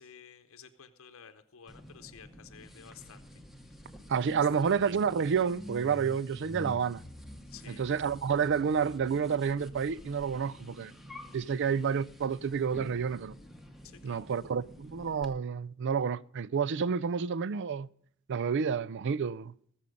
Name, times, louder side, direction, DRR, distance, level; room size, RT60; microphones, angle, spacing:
voice 1, 0.0-3.9 4.3-4.7 7.5-7.8 13.8-14.3, left 7 dB, 65° left, 0.8 m, -53 dB
sound 1, 1.7-15.3, equal, ahead, 1.0 m, -48 dB
voice 2, 4.1-7.0 7.7-10.9 11.3-13.3 14.0-17.9 18.3-19.5, right 6 dB, 55° right, 0.4 m, -29 dB
19.5 x 7.0 x 5.3 m
head